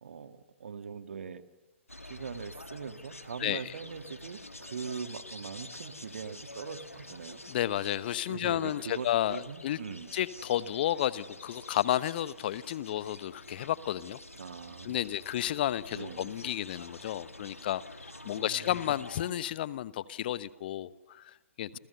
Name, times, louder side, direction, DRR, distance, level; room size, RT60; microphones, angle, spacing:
voice 1, 0.0-1.4 2.1-7.4 8.3-10.1 14.4-15.2 15.9-16.5 18.3-18.9 21.7-21.8, right 6 dB, 60° right, 10 dB, 2.1 m, -42 dB
sound 1, 1.9-19.3, left 1 dB, 90° left, 2.0 m, -48 dB
voice 2, 7.5-9.8 10.1-14.2 14.8-18.0 18.2-21.8, left 12 dB, 45° left, 17 dB, 1.1 m, -32 dB
29.5 x 29.0 x 6.9 m, 1.1 s
figure-of-eight pair, 125°, 7 cm